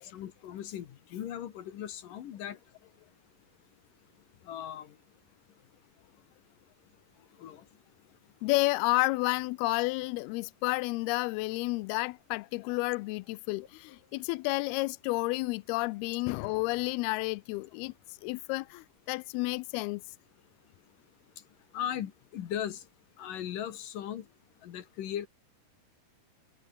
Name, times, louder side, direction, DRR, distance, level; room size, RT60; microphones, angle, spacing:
voice 1, 0.1-2.6 4.4-5.0 7.4-7.6 21.7-22.8 23.2-24.3 24.6-25.3, left 10 dB, 65° left, 3.0 m, -38 dB
voice 2, 8.4-17.9 18.2-20.0, left 23 dB, 90° left, 2.5 m, -31 dB
omnidirectional pair, 4.4 m